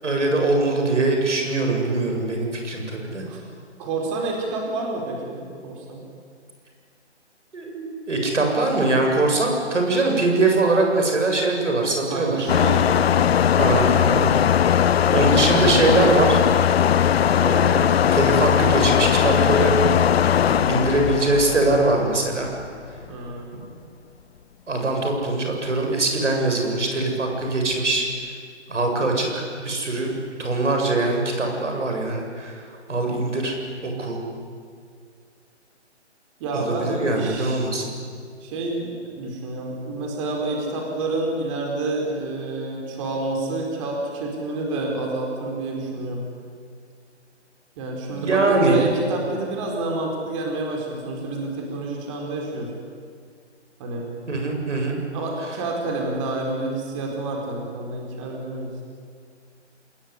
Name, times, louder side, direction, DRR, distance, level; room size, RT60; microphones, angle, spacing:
voice 1, 0.0-3.2 7.5-12.5 13.6-14.3 14.6-14.8 15.1-16.4 17.4-19.7 20.4-22.5 23.5-23.6 24.7-28.1 28.7-30.1 30.4-32.6 32.9-33.6 33.8-34.2 36.5-37.9 48.1-48.8 54.3-55.0, right 2 dB, 85° right, 2 dB, 7.8 m, -22 dB
voice 2, 3.8-6.0 12.1-13.4 23.0-23.6 36.4-37.7 38.4-46.2 47.8-52.7 53.8-54.1 55.1-58.7, right 2 dB, 25° right, 0 dB, 4.5 m, -28 dB
sound 1, 12.5-22.7, left 9 dB, 60° left, 0.6 m, -19 dB
27.0 x 21.0 x 9.9 m, 2.1 s
hypercardioid pair, 155°, 35 cm